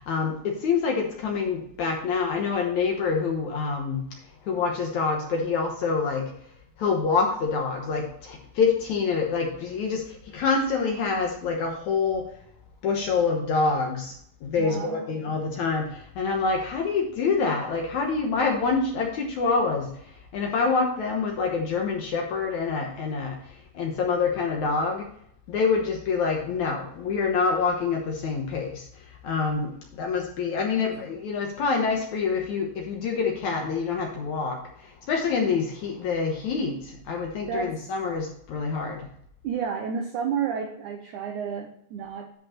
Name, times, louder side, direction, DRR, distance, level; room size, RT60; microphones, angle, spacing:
voice 1, 0.0-4.0 4.5-6.3 6.8-12.3 12.8-14.1 14.4-19.9 20.3-23.4 23.7-25.1 25.5-28.9 29.2-34.6 35.1-39.1, left 5 dB, 65° left, 1 dB, 1.9 m, -26 dB
voice 2, 14.6-15.2 30.8-30.9 37.5-37.8 39.4-42.3, right 7 dB, 85° right, 4 dB, 1.7 m, -31 dB
11.0 x 5.3 x 4.3 m, 0.68 s
omnidirectional pair, 4.6 m